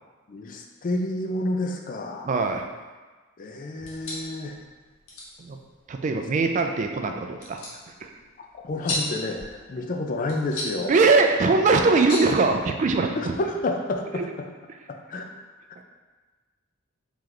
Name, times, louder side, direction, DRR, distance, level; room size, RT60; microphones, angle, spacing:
voice 1, 0.3-2.3 3.4-4.6 8.5-11.0 13.2-14.3 14.9-15.3, left 2 dB, 40° left, 3 dB, 0.4 m, -29 dB
voice 2, 2.2-2.6 5.4-5.6 5.9-7.6 8.0-8.1 10.9-13.3 14.2-14.3, right 3 dB, 35° right, 4 dB, 0.3 m, -21 dB
sound 1, 3.7-13.2, left 1 dB, 80° left, 0.9 m, -38 dB
3.2 x 3.0 x 3.8 m, 1.3 s
head